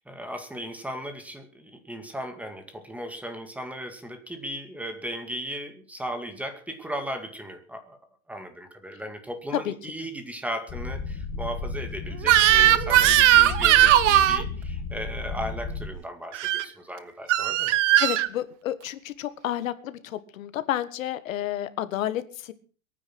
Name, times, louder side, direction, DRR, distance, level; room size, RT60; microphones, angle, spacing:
voice 1, 0.0-8.0 8.3-17.8, equal, 5° right, 7 dB, 2.2 m, -36 dB
sound 1, 10.7-15.9, left 4 dB, 25° left, 2.4 m, -33 dB
Crying sobbing / Screech, 12.2-14.4 16.3-16.6 17.3-18.3, right 13 dB, 60° right, 1.3 m, -18 dB
voice 2, 18.0-22.5, left 12 dB, 70° left, 13 dB, 1.8 m, -30 dB
22.0 x 9.7 x 6.1 m, 0.41 s
hypercardioid pair, 140°, 41 cm